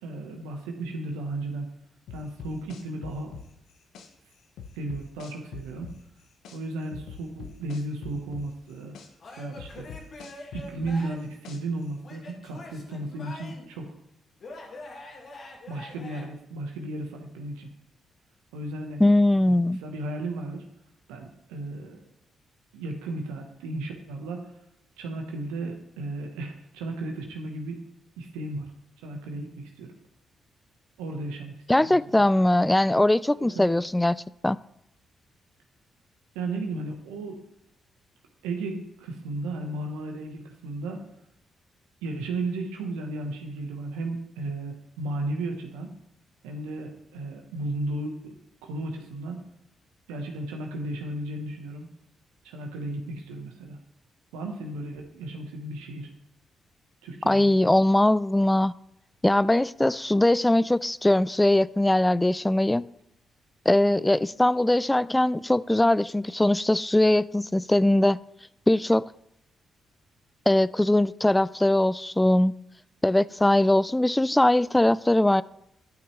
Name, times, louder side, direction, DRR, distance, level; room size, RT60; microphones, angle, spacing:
voice 1, 0.0-1.7 2.1-3.3 4.7-5.9 6.5-8.9 9.4-9.9 10.5-13.9 15.7-17.7 18.5-19.0 19.8-20.6 21.1-22.0 22.7-24.5 25.0-27.8 28.2-28.7 29.0-29.9 31.0-32.2 33.4-33.8 36.3-37.4 38.4-41.1 42.0-45.9 46.4-48.4 48.6-49.4 50.1-51.9 52.4-53.8 54.3-56.1 57.0-57.5, right 2 dB, 85° right, 2 dB, 1.1 m, -34 dB
sound 1, 2.1-4.1 4.6-6.6 6.9-9.1 9.6-11.8, left 6 dB, 75° left, 0.9 m, -42 dB
Male speech man speaking / Yell / Laughter, 9.2-11.3 12.0-13.7 14.4-16.2, left 2 dB, 55° left, 1.9 m, -44 dB
voice 2, 19.0-19.8 31.7-34.6 57.3-58.7 59.2-62.8 63.7-68.2 68.7-69.0 70.5-72.5 73.0-75.4, left 1 dB, 15° left, 19 dB, 0.3 m, -21 dB
12.0 x 5.7 x 3.2 m, 0.79 s
hypercardioid pair, 45°, 0 cm